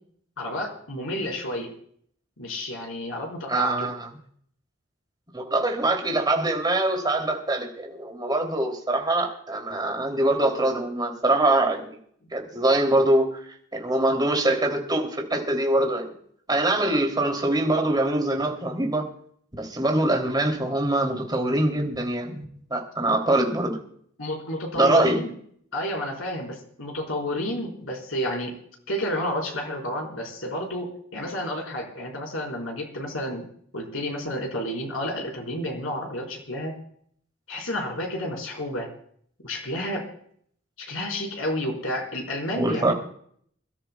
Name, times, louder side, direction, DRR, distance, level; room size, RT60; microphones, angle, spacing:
voice 1, 0.4-1.7 2.4-3.9 24.2-25.3 25.7-28.6 28.9-33.4 33.7-36.7 37.5-38.9 39.4-40.1 40.8-42.9, left 1 dB, 85° left, 1 dB, 4.7 m, -30 dB
voice 2, 3.5-4.1 5.3-12.0 12.3-13.4 13.7-16.1 16.5-19.1 19.5-22.4 22.7-23.8 24.7-25.2 42.6-42.9, right 1 dB, 20° right, 1 dB, 3.1 m, -23 dB
27.0 x 13.5 x 2.3 m, 0.62 s
head